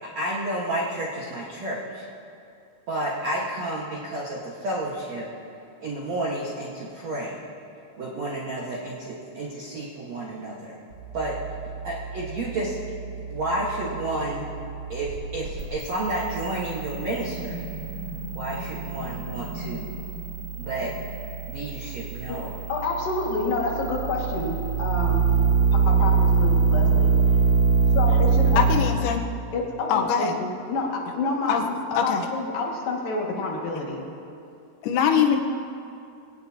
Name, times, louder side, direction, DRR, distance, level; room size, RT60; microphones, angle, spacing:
voice 1, 0.0-2.0 2.9-5.3 5.8-7.4 8.0-10.8 11.1-11.4 11.8-12.8 13.1-14.5 14.9-17.7 18.3-19.9 20.5-20.9 21.5-22.6, right 1 dB, 75° right, -4 dB, 1.5 m, -31 dB
sound 1, 10.9-28.8, right 5 dB, 25° right, 4.5 m, -25 dB
voice 2, 22.7-25.2 25.7-27.1 27.9-28.6 29.5-31.7 32.0-34.0, left 3 dB, 55° left, -2 dB, 3.3 m, -28 dB
voice 3, 28.4-29.2 29.9-30.4 31.5-32.3 34.8-35.4, left 7 dB, 85° left, 3 dB, 3.9 m, -23 dB
23.0 x 18.0 x 2.9 m, 2.6 s
omnidirectional pair, 5.9 m